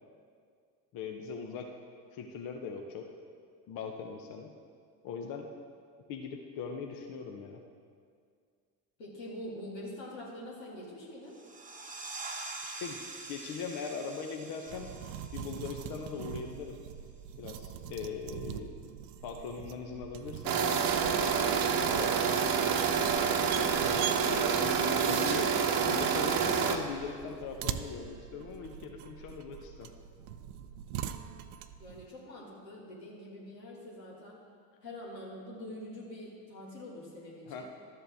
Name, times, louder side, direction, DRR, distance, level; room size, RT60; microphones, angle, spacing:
voice 1, 0.9-1.7 2.1-3.1 3.7-4.5 5.0-5.5 6.1-7.6 12.6-13.0 13.3-14.9 15.3-16.8 17.4-18.7 19.2-20.6 21.9-22.2 24.1-25.5 25.9-29.9 37.5-37.7, left 6 dB, 45° left, 3 dB, 0.9 m, -40 dB
voice 2, 9.0-11.4 24.5-24.9 31.8-34.4 34.8-37.7, left 1 dB, 80° left, -4 dB, 2.1 m, -45 dB
sound 1, 11.3-16.7, right 3 dB, 15° right, 1.0 m, -45 dB
sound 2, 14.7-32.1, right 10 dB, 65° right, 0.6 m, -43 dB
sound 3, 20.4-26.8, right 6 dB, 45° right, 1.0 m, -28 dB
12.0 x 7.7 x 3.5 m, 2.1 s
figure-of-eight pair, 65°, 50 cm